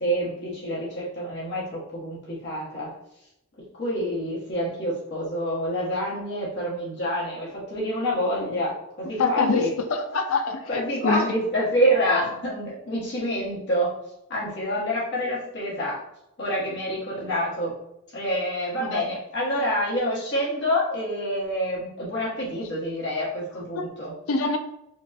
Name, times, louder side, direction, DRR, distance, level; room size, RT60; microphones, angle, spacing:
voice 1, 0.0-2.9 3.7-9.7 10.7-13.9 14.3-16.0 16.4-17.8 18.1-24.1, equal, 55° left, -5 dB, 1.3 m, -27 dB
voice 2, 9.2-11.2 12.0-12.2 18.8-19.0 23.7-23.9 24.3-24.6, left 4 dB, 75° left, 6 dB, 0.5 m, -25 dB
4.4 x 2.3 x 2.7 m, 0.84 s
head